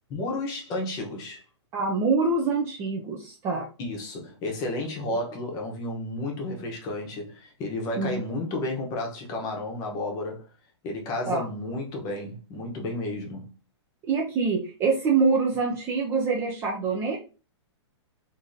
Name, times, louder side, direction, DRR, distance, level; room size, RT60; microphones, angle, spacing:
voice 1, 0.1-1.4 3.8-10.4 10.8-13.5, left 2 dB, 25° left, 0.9 m, -32 dB
voice 2, 1.7-3.7 8.0-8.2 11.3-11.5 14.0-17.2, right 4 dB, 15° right, 0.4 m, -25 dB
3.5 x 2.6 x 2.6 m
hypercardioid pair, 155°, 15 cm